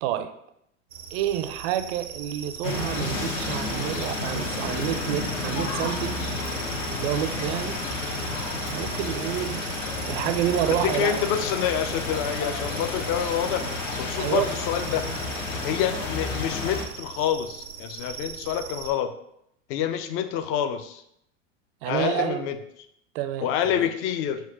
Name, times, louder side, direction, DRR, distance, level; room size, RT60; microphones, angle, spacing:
voice 1, 0.0-0.3 1.1-6.2 7.0-7.9 8.6-9.6 10.0-11.3 14.2-14.5 21.8-22.4 23.1-23.8, right 11 dB, 50° right, 10 dB, 0.5 m, -29 dB
sound 1, 0.9-18.9, right 7 dB, 85° right, 0.7 m, -40 dB
sound 2, 2.6-16.8, left 3 dB, 75° left, 1.0 m, -31 dB
voice 2, 10.7-13.6 13.9-15.0 15.6-19.1 19.7-21.0 21.9-22.6 23.4-24.4, left 9 dB, 35° left, 9 dB, 0.4 m, -27 dB
4.7 x 2.1 x 4.3 m, 0.76 s
hypercardioid pair, 100°, 38 cm